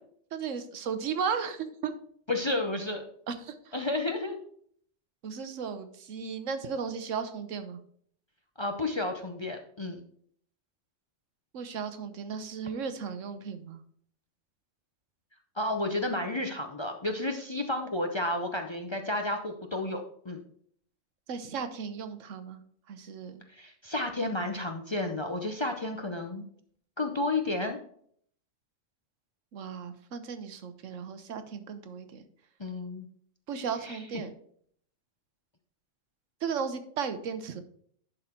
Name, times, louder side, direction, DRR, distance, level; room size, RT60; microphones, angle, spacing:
voice 1, 0.3-1.9 3.3-3.8 5.2-7.8 11.5-13.8 21.3-22.6 22.9-23.4 29.5-32.2 33.5-34.3 36.4-37.6, right 6 dB, 85° right, 10 dB, 1.2 m, -35 dB
voice 2, 2.3-3.0 3.7-4.4 8.6-10.0 15.6-20.4 23.5-26.5 27.0-27.8 32.6-33.1 33.8-34.0, left 2 dB, 30° left, 4 dB, 0.5 m, -31 dB
11.0 x 4.1 x 4.3 m, 0.62 s
omnidirectional pair, 1.3 m